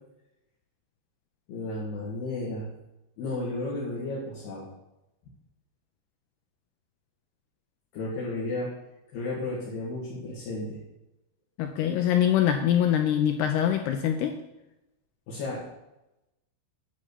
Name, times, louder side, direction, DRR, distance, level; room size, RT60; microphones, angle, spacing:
voice 1, 1.5-2.7 3.2-4.7 7.9-8.7 9.1-10.8 15.3-15.7, left 2 dB, 60° left, -6 dB, 3.8 m, -33 dB
voice 2, 11.6-14.4, left 10 dB, 85° left, 5 dB, 2.3 m, -24 dB
11.5 x 5.1 x 8.3 m, 0.93 s
omnidirectional pair, 5.4 m